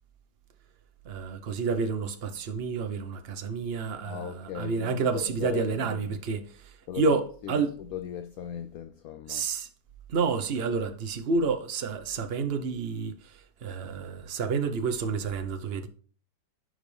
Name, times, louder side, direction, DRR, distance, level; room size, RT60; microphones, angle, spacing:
voice 1, 1.0-7.7 9.3-9.7 10.1-15.9, right 4 dB, 45° right, 0.9 m, -29 dB
voice 2, 4.0-6.2 6.9-7.1 7.4-9.5, left 10 dB, 70° left, 0.8 m, -38 dB
11.5 x 5.0 x 3.3 m
omnidirectional pair, 2.0 m